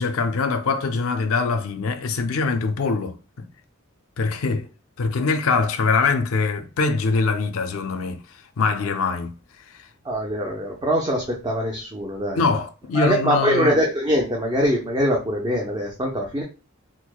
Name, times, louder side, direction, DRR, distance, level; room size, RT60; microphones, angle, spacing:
voice 1, 0.0-3.2 4.2-4.7 5.0-8.2 8.6-9.3 12.3-13.8, left 4 dB, 80° left, 0.5 m, -23 dB
voice 2, 10.1-12.4 12.9-16.4, equal, 20° right, 0.5 m, -23 dB
4.6 x 2.0 x 2.2 m
head